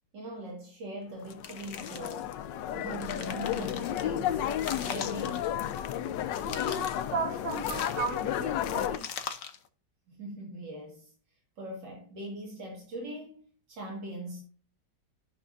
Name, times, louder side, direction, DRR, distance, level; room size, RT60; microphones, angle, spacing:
voice 1, 0.1-2.3 2.7-4.4 4.8-5.5 10.1-11.1 11.6-14.4, right 1 dB, 80° right, 2.6 m, -41 dB
sound 1, 1.2-9.0, left 10 dB, 85° left, 1.3 m, -33 dB
sound 2, 1.3-2.3 2.8-4.0 4.5-6.0 6.3-7.1 7.5-8.4 9.0-9.7, left 7 dB, 55° left, 1.1 m, -41 dB
voice 2, 6.4-9.0, right 3 dB, 60° right, 3.0 m, -35 dB
13.0 x 6.0 x 2.6 m
omnidirectional pair, 1.9 m